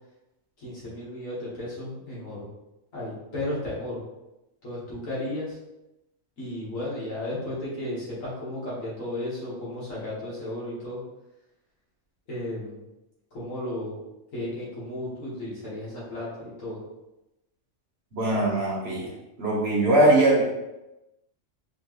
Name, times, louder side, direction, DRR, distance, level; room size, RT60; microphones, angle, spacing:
voice 1, 0.6-2.5 2.9-4.0 4.6-5.6 6.4-11.0 12.3-12.9 13.3-14.0 14.3-16.8, left 1 dB, 80° left, -8 dB, 2.1 m, -34 dB
voice 2, 18.1-19.1 19.4-20.4, right 1 dB, 50° right, -4 dB, 1.4 m, -21 dB
4.8 x 3.1 x 3.1 m, 0.96 s
omnidirectional pair, 1.4 m